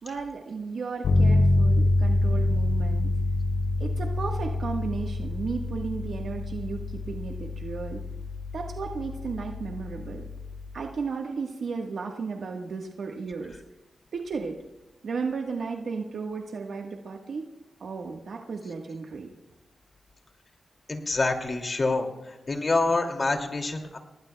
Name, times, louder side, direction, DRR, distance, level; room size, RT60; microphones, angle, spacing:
voice 1, 0.0-3.1 3.8-8.0 8.5-10.3 10.7-13.6 14.1-14.6 15.0-17.5 17.8-19.3, right 4 dB, 70° right, 1 dB, 1.3 m, -34 dB
Bass guitar, 1.0-10.8, left 2 dB, 85° left, 3.2 m, -26 dB
voice 2, 20.9-22.1 22.5-24.0, left 3 dB, 40° left, 3 dB, 2.4 m, -26 dB
29.5 x 19.0 x 2.3 m, 1.0 s
cardioid pair, 75°, 0 cm